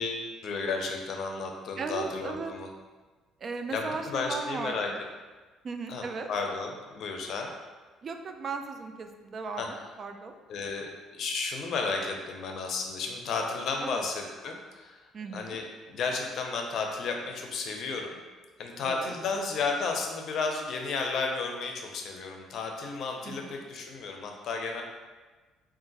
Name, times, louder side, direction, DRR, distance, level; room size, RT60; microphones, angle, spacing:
voice 1, 0.0-2.7 3.7-4.9 5.9-7.5 9.6-9.7 10.5-15.0 15.3-18.2 18.6-24.8, left 4 dB, 60° left, 2 dB, 0.6 m, -33 dB
voice 2, 1.8-2.5 3.4-5.0 5.6-6.3 8.0-10.3 13.8-14.1 15.1-15.6 18.8-19.1 23.2-23.5, right 4 dB, 40° right, 6 dB, 0.4 m, -37 dB
3.7 x 2.5 x 4.0 m, 1.3 s
cardioid pair, 100°, 0 cm